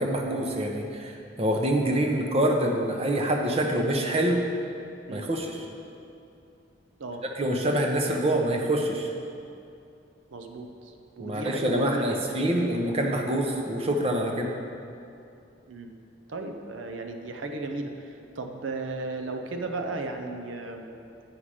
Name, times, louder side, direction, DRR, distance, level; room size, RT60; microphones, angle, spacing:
voice 1, 0.0-4.4 5.1-5.6 7.4-9.1 11.2-14.5, right 1 dB, 30° right, 2 dB, 0.7 m, -26 dB
voice 2, 10.3-12.8 15.7-15.9 16.3-20.9, right 2 dB, 90° right, 4 dB, 0.6 m, -35 dB
8.7 x 5.6 x 4.9 m, 2.6 s
head